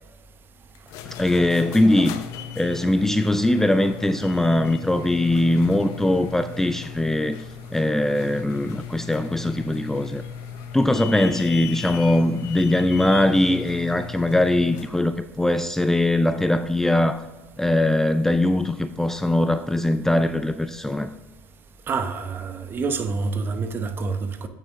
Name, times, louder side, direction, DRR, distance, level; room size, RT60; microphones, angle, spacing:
sound 1, 0.7-15.0, left 8 dB, 70° left, 0.7 m, -37 dB
voice 1, 1.1-2.1 2.6-7.4 7.7-10.2 10.7-17.2 17.6-21.1, left 1 dB, 5° left, 0.4 m, -21 dB
voice 2, 21.9-24.5, right 4 dB, 40° right, 0.9 m, -27 dB
8.4 x 6.5 x 3.6 m
supercardioid pair, 90°, 6 cm